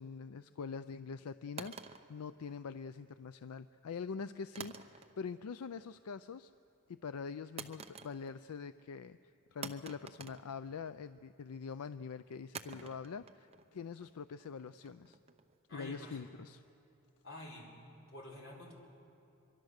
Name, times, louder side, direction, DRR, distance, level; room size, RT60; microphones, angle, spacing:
voice 1, 0.0-6.5 6.9-9.2 9.5-15.2 15.7-16.6, left 5 dB, 90° left, 13 dB, 0.4 m, -44 dB
sound 1, 1.6-3.0 4.6-5.4 5.7-6.2 7.6-8.5 8.8-8.9 9.6-11.1 12.5-15.6, right 5 dB, 25° right, 0.7 m, -49 dB
voice 2, 15.7-16.2 17.2-17.7 18.1-18.7, left 1 dB, 60° left, -2 dB, 4.6 m, -48 dB
24.0 x 23.5 x 6.6 m, 2.9 s
head